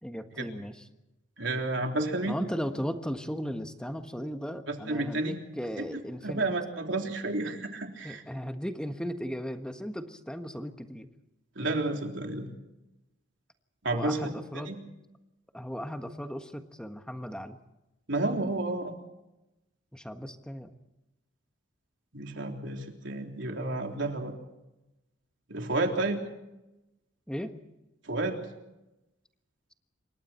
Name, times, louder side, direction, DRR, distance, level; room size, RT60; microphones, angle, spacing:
voice 1, 0.0-0.8 2.3-6.5 8.0-11.1 13.9-14.8 15.5-17.6 19.9-20.7 27.3-27.6, equal, 5° left, 6 dB, 1.4 m, -36 dB
voice 2, 1.4-2.4 4.7-5.4 5.8-5.9 6.2-8.2 11.6-12.5 13.8-14.8 18.1-18.9 22.1-24.3 25.5-26.2 28.0-28.4, right 2 dB, 70° right, 2 dB, 3.6 m, -31 dB
27.0 x 24.0 x 4.4 m, 0.96 s
head